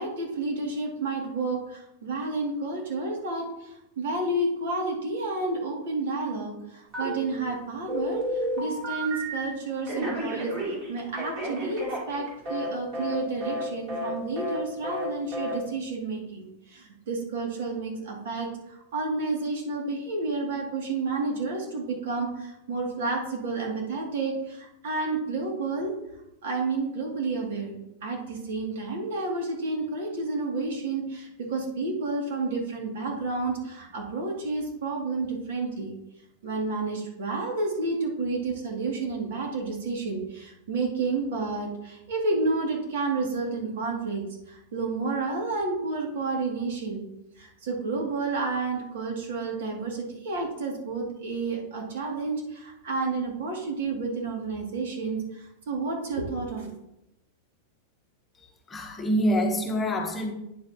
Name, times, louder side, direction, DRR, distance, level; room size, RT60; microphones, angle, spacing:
voice 1, 0.0-25.9 26.4-35.9 36.4-47.0 47.4-56.7, right 3 dB, 75° right, -1 dB, 2.5 m, -30 dB
Telephone, 6.9-7.5 7.9-9.5 9.9-12.7 12.9-13.2 13.4-13.6 13.9-14.1 14.4-14.6 14.8-15.1 15.3-15.5, equal, 35° right, 3.1 m, -32 dB
voice 2, 58.7-60.3, equal, 15° left, 1 dB, 1.0 m, -26 dB
9.3 x 7.3 x 2.9 m, 0.85 s
supercardioid pair, 155°, 0 cm